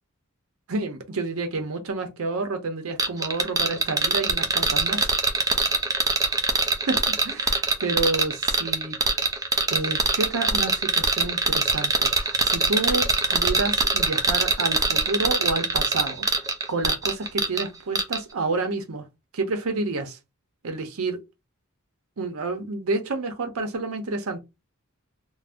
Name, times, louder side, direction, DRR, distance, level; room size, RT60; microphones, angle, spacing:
voice 1, 0.7-5.1 6.7-9.0 9.7-16.3 16.7-19.0 19.3-20.2 20.6-21.2 22.2-24.4, right 3 dB, 75° right, 0.6 m, -29 dB
sound 1, 3.0-17.7 18.0-18.2, right 3 dB, 15° right, 0.3 m, -23 dB
2.5 x 2.0 x 3.4 m
head